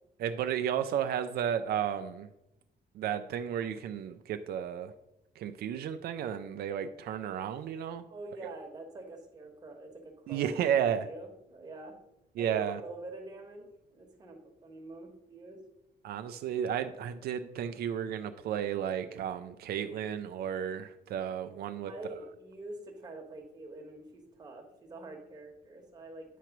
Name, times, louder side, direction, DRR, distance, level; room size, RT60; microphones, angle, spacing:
voice 1, 0.2-2.3 2.9-4.9 5.4-8.0 10.3-11.1 12.4-12.8 16.0-21.9, right 9 dB, 75° right, 9 dB, 0.4 m, -33 dB
voice 2, 8.1-12.0 12.4-15.6 21.8-26.4, right 2 dB, 25° right, 1 dB, 1.2 m, -46 dB
9.1 x 3.0 x 5.8 m, 0.88 s
cardioid pair, 170°, 16 cm